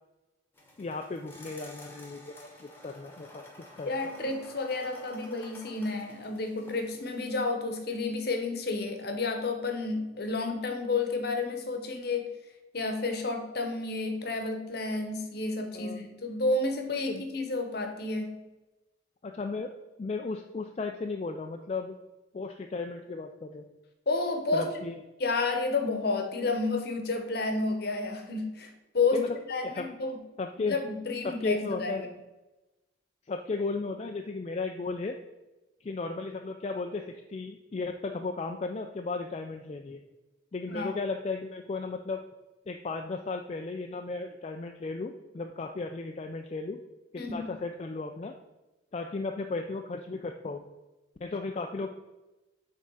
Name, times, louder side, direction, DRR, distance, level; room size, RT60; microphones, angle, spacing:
sound 1, 0.5-7.2, left 1 dB, 10° left, 1.0 m, -51 dB
voice 1, 0.8-3.4 3.8-3.9 15.7-16.0 17.1-17.2 19.2-19.7 20.0-22.0 22.3-23.7 24.5-24.9 29.1-29.4 29.6-29.9 30.4-30.8 31.2-32.1 33.3-35.1 35.8-40.0 40.5-42.2 42.7-46.8 47.1-48.3 48.9-50.6 51.2-52.0, left 3 dB, 30° left, 4 dB, 0.3 m, -35 dB
voice 2, 3.9-12.3 12.7-18.4 24.1-24.7 25.2-30.2 30.6-32.1 40.7-41.0 47.2-47.5, left 3 dB, 55° left, 5 dB, 0.9 m, -31 dB
6.2 x 3.6 x 5.4 m, 1.1 s
head